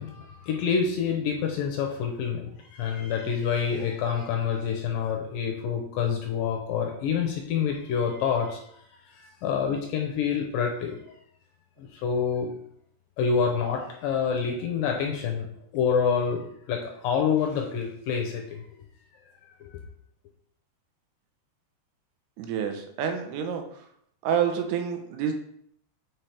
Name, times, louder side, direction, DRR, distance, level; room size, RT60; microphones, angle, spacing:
voice 1, 0.0-8.7 9.2-11.2 11.8-12.5 13.2-15.5 15.7-18.6 19.6-19.8, left 6 dB, 75° left, 2 dB, 2.1 m, -27 dB
voice 2, 22.4-23.6 24.2-25.3, right 8 dB, 90° right, 5 dB, 2.8 m, -28 dB
6.2 x 5.8 x 3.4 m, 0.68 s
omnidirectional pair, 4.6 m